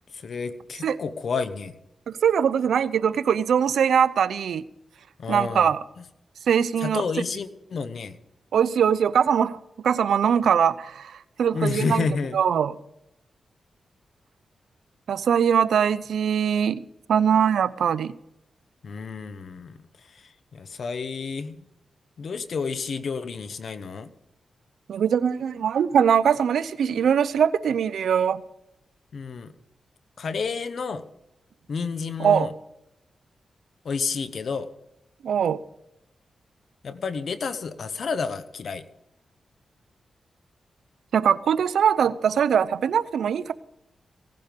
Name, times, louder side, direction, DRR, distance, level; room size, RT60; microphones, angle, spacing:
voice 1, 0.1-1.7 5.2-5.7 6.8-8.2 11.5-12.4 18.8-19.8 20.1-21.6 22.2-24.1 29.1-29.5 30.2-31.0 31.7-32.5 33.8-34.7 36.8-38.8, left 5 dB, 65° left, 1.0 m, -30 dB
voice 2, 2.1-4.6 5.3-5.8 6.5-7.0 8.5-12.1 12.3-12.8 15.1-16.8 17.1-18.2 24.9-28.4 32.2-32.5 35.2-35.6 41.1-43.5, right 8 dB, 85° right, 0.6 m, -22 dB
17.0 x 11.0 x 5.3 m
cardioid pair, 70°, 0 cm